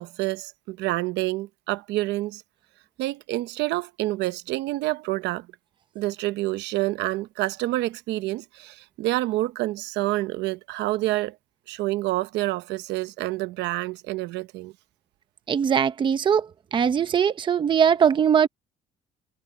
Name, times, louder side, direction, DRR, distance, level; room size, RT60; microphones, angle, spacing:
voice 1, 0.0-2.4 3.0-5.5 5.9-11.4 11.7-14.7, right 18 dB, 80° right, 0.8 m, -28 dB
voice 2, 15.5-16.5 16.7-18.5, right 7 dB, 25° right, 0.8 m, -20 dB
cardioid pair, 165°, 18 cm